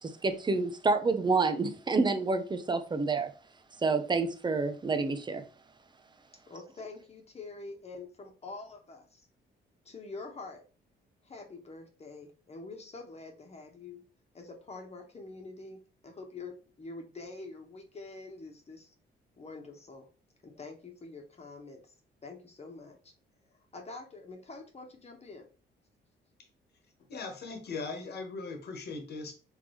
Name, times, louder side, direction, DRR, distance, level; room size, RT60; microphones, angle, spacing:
voice 1, 0.0-3.3 3.8-5.4, right 3 dB, 20° right, 0.7 m, -28 dB
voice 2, 6.5-9.3 9.8-10.6 11.2-14.0 14.3-18.9 19.4-20.1 20.4-21.9 22.2-23.1 23.7-25.5, left 3 dB, 30° left, 1.3 m, -46 dB
voice 3, 27.1-29.3, left 4 dB, 55° left, 1.5 m, -39 dB
4.7 x 3.6 x 3.2 m
cardioid pair, 90°, 20 cm